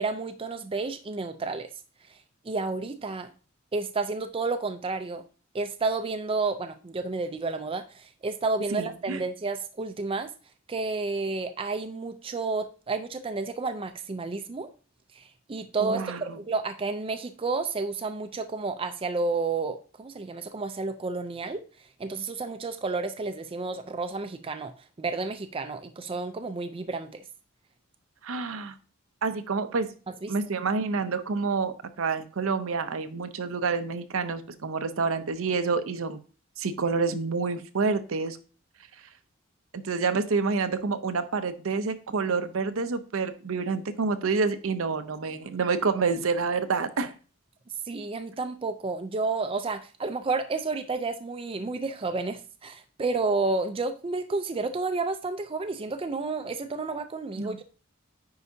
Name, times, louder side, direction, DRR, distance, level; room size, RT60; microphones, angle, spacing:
voice 1, 0.0-1.7 2.4-3.3 3.7-5.2 5.5-10.3 10.7-14.7 15.1-21.6 22.0-27.2 30.2-30.3 47.9-57.6, right 3 dB, 25° right, 0.4 m, -31 dB
voice 2, 8.7-9.2 15.8-16.4 28.2-28.7 29.2-29.9 30.3-36.2 36.6-38.4 39.7-47.1 57.4-57.6, right 4 dB, 75° right, 0.6 m, -28 dB
9.5 x 4.7 x 2.7 m
head